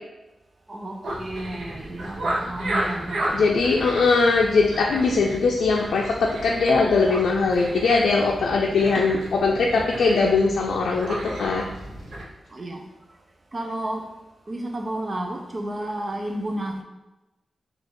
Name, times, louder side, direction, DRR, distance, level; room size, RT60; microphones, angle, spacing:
voice 1, 0.7-3.5 12.5-12.8 13.5-14.0 14.5-16.8, right 1 dB, 30° right, 0.5 m, -31 dB
sound 1, 1.0-12.2, right 1 dB, 65° right, 0.7 m, -33 dB
voice 2, 3.3-11.6, left 4 dB, 85° left, 0.4 m, -21 dB
4.1 x 2.4 x 4.6 m
wide cardioid pair, 175°, 0 cm